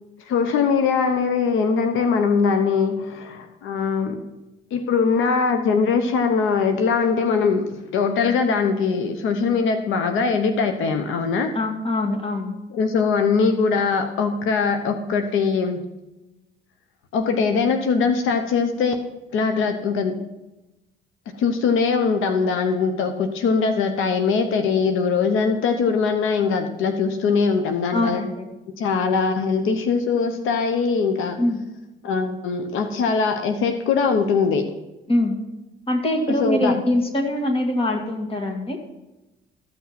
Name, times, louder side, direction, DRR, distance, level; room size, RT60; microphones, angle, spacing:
voice 1, 0.3-4.2 4.7-11.5 12.7-15.8 17.1-18.9 19.3-20.1 21.4-28.2 28.8-31.4 32.0-34.6 36.4-36.8, left 5 dB, 85° left, 7 dB, 0.9 m, -21 dB
voice 2, 11.5-12.5 27.9-28.5 31.4-31.6 35.1-35.4 35.9-38.8, left 1 dB, 30° left, 3 dB, 2.1 m, -23 dB
14.0 x 6.1 x 5.8 m, 1.0 s
cardioid pair, 90°, 20 cm